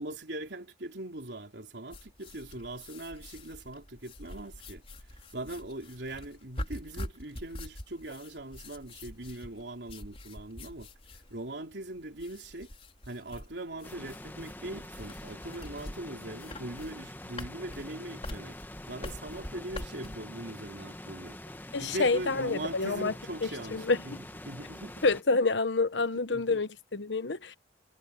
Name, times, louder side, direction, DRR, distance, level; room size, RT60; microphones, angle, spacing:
voice 1, 0.0-4.8 5.1-10.9 11.3-12.7 13.0-18.6 18.9-21.4 21.8-24.9 26.0-26.6, right 1 dB, 75° right, 3.3 m, -41 dB
sound 1, 1.9-20.2, left 1 dB, 35° left, 4.7 m, -45 dB
sound 2, 13.8-25.2, left 1 dB, 10° left, 1.3 m, -45 dB
voice 2, 21.7-23.1 23.7-24.2 25.0-27.6, left 3 dB, 80° left, 1.1 m, -28 dB
head